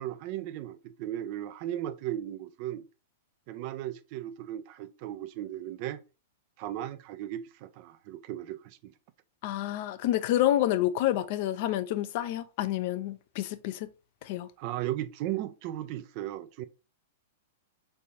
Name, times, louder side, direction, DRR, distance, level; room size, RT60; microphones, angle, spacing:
voice 1, 0.0-2.9 3.5-6.0 6.6-8.8 14.6-16.6, right 12 dB, 50° right, 0.4 m, -36 dB
voice 2, 9.4-13.9 14.2-14.5, left 13 dB, 55° left, 0.5 m, -28 dB
4.4 x 3.3 x 2.8 m
hypercardioid pair, 105°, 0 cm